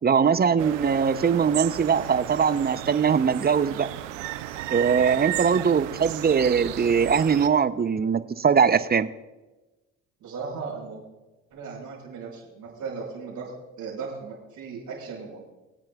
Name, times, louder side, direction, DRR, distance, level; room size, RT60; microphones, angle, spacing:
voice 1, 0.0-3.9 4.7-9.1, right 6 dB, 25° right, 14 dB, 0.6 m, -21 dB
sound 1, 0.6-7.5, right 14 dB, 90° right, 0.5 m, -34 dB
voice 2, 10.2-11.0 11.5-13.5 13.8-15.4, right 5 dB, 70° right, -11 dB, 4.6 m, -37 dB
24.0 x 8.7 x 2.3 m, 1.1 s
hypercardioid pair, 55°, 36 cm